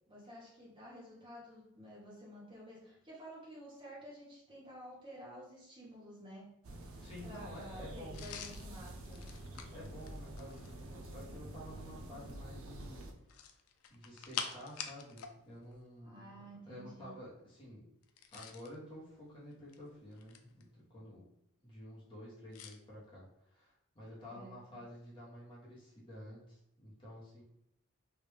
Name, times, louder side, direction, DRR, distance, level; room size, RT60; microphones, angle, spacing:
voice 1, 0.1-6.6 7.2-9.3 16.0-17.2 24.3-24.8, equal, 25° right, -6 dB, 0.8 m, -52 dB
sound 1, 6.6-13.1, right 1 dB, 75° right, 0.5 m, -48 dB
voice 2, 7.0-8.2 9.7-13.2 13.9-16.3 16.6-17.9 18.3-21.3 21.6-27.4, equal, 25° left, -6 dB, 1.0 m, -51 dB
sound 2, 8.1-10.8 13.2-15.4 15.6-15.8 18.0-18.8 19.5-20.6 22.5-22.8, left 7 dB, 80° left, 0.4 m, -46 dB
3.1 x 2.5 x 3.3 m, 0.79 s
head